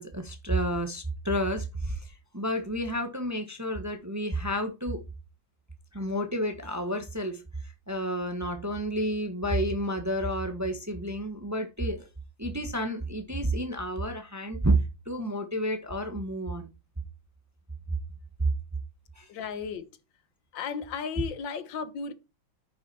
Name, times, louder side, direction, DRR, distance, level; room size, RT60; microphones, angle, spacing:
voice 1, 0.0-5.0 5.9-12.1 12.4-14.7 15.1-16.7 19.2-19.3, equal, 10° right, 0.9 m, -30 dB
voice 2, 19.3-19.9 20.5-22.1, left 6 dB, 70° left, 1.7 m, -34 dB
9.8 x 6.0 x 4.2 m
omnidirectional pair, 2.1 m